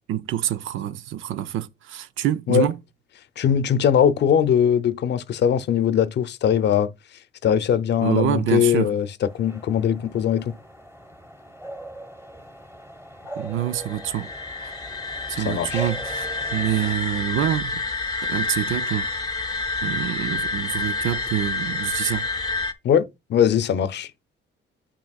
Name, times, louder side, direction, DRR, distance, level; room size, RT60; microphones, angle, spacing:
voice 1, 0.1-2.8 8.0-8.9 13.4-14.3 14.6-14.7 15.3-17.8 18.2-19.1 19.8-22.3, right 12 dB, 80° right, 0.6 m, -26 dB
voice 2, 3.4-6.9 7.4-10.5 15.4-15.9 22.8-24.1, left 9 dB, 60° left, 0.6 m, -21 dB
sound 1, 9.3-16.9, right 1 dB, 10° right, 1.4 m, -40 dB
sound 2, 13.6-22.7, left 3 dB, 20° left, 0.7 m, -28 dB
8.3 x 6.0 x 2.3 m
cardioid pair, 90°, 20 cm